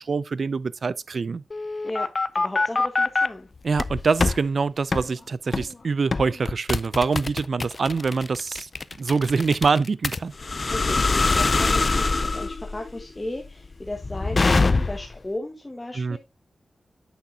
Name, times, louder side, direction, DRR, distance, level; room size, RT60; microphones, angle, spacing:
voice 1, 0.0-1.4 3.6-8.7 9.0-10.3 15.9-16.2, right 4 dB, 65° right, 0.4 m, -25 dB
sound 1, 1.5-3.3 3.8-4.4 4.9-5.1 5.5-5.7 6.1-15.2, left 3 dB, 45° left, 0.4 m, -24 dB
voice 2, 1.8-3.5 10.7-16.2, left 1 dB, 20° left, 1.3 m, -35 dB
8.3 x 6.1 x 2.7 m
cardioid pair, 65°, 0 cm